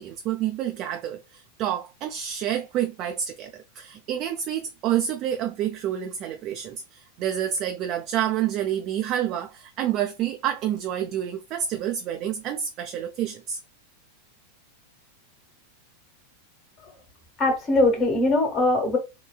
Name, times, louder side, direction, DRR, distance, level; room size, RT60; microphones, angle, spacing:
voice 1, 0.0-13.6, right 10 dB, 35° right, 0.4 m, -28 dB
voice 2, 17.4-19.0, left 2 dB, 30° left, 1.3 m, -21 dB
3.8 x 2.2 x 2.3 m
figure-of-eight pair, 90°, 0 cm